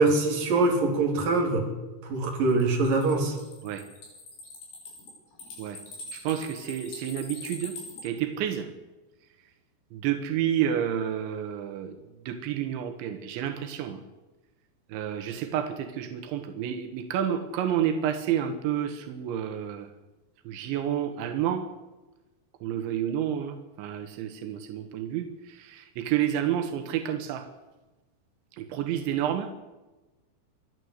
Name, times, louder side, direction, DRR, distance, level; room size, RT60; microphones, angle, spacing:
voice 1, 0.0-1.7 2.0-3.4, right 3 dB, 50° right, 1 dB, 4.9 m, -23 dB
sound 1, 2.5-8.0, left 2 dB, 70° left, 7.5 m, -43 dB
voice 2, 6.1-8.7 9.9-12.0 12.3-14.0 14.9-19.9 20.5-21.7 22.6-27.5 28.5-29.5, right 10 dB, 85° right, 7 dB, 3.7 m, -30 dB
28.0 x 11.5 x 8.1 m, 1.1 s
omnidirectional pair, 5.1 m